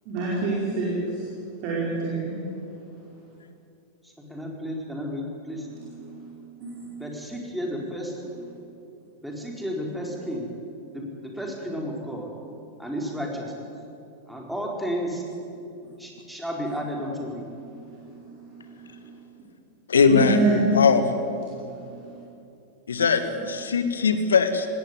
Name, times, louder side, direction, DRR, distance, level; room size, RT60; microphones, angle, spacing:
voice 1, 0.1-0.9 1.6-2.4 6.0-6.3 6.6-6.8 20.1-20.6 21.6-21.7, right 3 dB, 45° right, -5 dB, 5.0 m, -26 dB
voice 2, 4.0-5.7 6.9-8.2 9.2-10.5 10.9-12.3 12.8-13.7 14.3-15.2 16.0-17.5, equal, ahead, -1 dB, 4.5 m, -32 dB
voice 3, 19.9-20.4 20.7-21.2 22.9-24.7, left 5 dB, 70° left, 9 dB, 1.7 m, -20 dB
19.0 x 17.0 x 9.6 m, 2.7 s
figure-of-eight pair, 90°, 0 cm